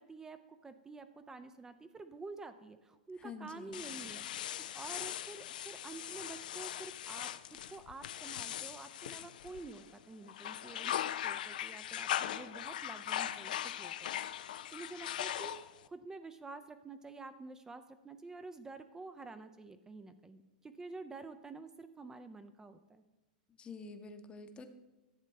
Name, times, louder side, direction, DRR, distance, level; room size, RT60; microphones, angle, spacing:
voice 1, 0.0-11.0 11.2-13.9 14.4-23.0, right 3 dB, 15° right, 10 dB, 0.4 m, -49 dB
voice 2, 3.2-3.8 23.5-24.7, left 4 dB, 20° left, 8 dB, 0.8 m, -48 dB
sound 1, 3.7-9.9 10.3-15.9, left 11 dB, 70° left, 0.4 m, -40 dB
11.0 x 7.4 x 3.2 m, 1.1 s
hypercardioid pair, 110°, 5 cm